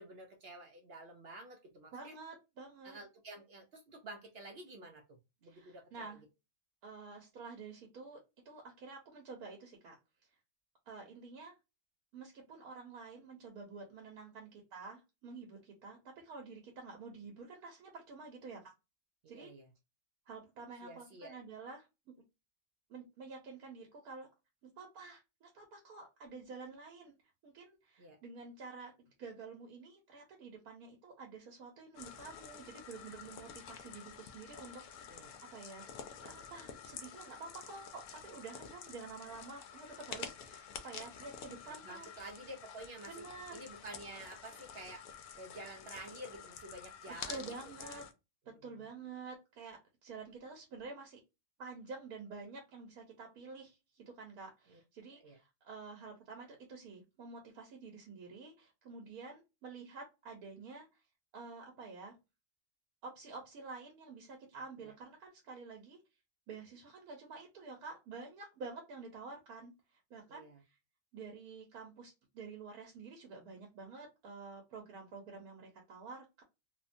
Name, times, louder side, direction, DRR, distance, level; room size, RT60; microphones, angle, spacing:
voice 1, 0.0-2.2 2.8-6.2 19.2-19.7 20.8-21.4 28.0-28.2 35.1-35.3 41.6-43.2 43.5-45.1 45.4-47.5 47.8-48.0 48.5-48.9 54.7-54.8 55.2-55.4 64.8-64.9 70.3-70.6, right 1 dB, 65° right, 3 dB, 0.6 m, -50 dB
voice 2, 1.9-3.0 5.4-6.2 6.8-10.0 10.9-11.6 12.1-18.7 19.3-19.5 20.3-21.9 22.9-24.3 24.6-27.1 27.4-35.9 36.2-42.1 43.1-43.6 47.3-48.0 48.5-51.2 51.6-61.0 61.3-62.2 63.0-66.0 66.5-70.8 71.1-76.4, right 4 dB, 90° right, 0 dB, 1.3 m, -49 dB
sound 1, 32.0-48.1, left 7 dB, 90° left, 1.1 m, -49 dB
2.9 x 2.2 x 2.5 m, 0.24 s
omnidirectional pair, 1.5 m